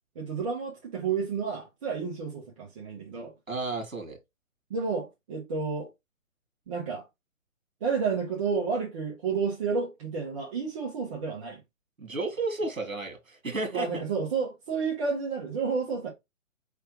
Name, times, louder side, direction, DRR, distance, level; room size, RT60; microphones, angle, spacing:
voice 1, 0.1-3.3 4.7-5.9 6.7-7.0 7.8-11.6 13.7-16.1, right 5 dB, 25° right, 1.0 m, -31 dB
voice 2, 3.5-4.2 12.0-14.0, right 3 dB, 80° right, 1.8 m, -32 dB
4.8 x 3.4 x 3.0 m
figure-of-eight pair, 140°, 40 cm